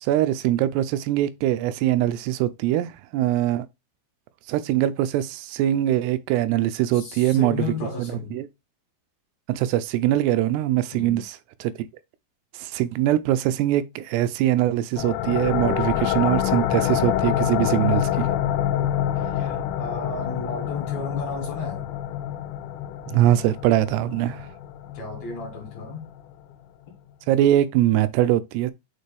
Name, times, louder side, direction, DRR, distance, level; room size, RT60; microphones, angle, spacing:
voice 1, 0.0-3.7 4.5-7.7 8.0-8.5 9.5-11.7 12.6-18.3 23.1-24.5 27.3-28.7, right 13 dB, 80° right, 2.6 m, -22 dB
voice 2, 6.9-8.4 10.9-11.2 19.2-21.9 24.9-26.1, left 4 dB, 70° left, 1.7 m, -33 dB
sound 1, 15.0-26.3, left 11 dB, 85° left, 2.4 m, -27 dB
6.6 x 5.2 x 3.3 m
omnidirectional pair, 5.0 m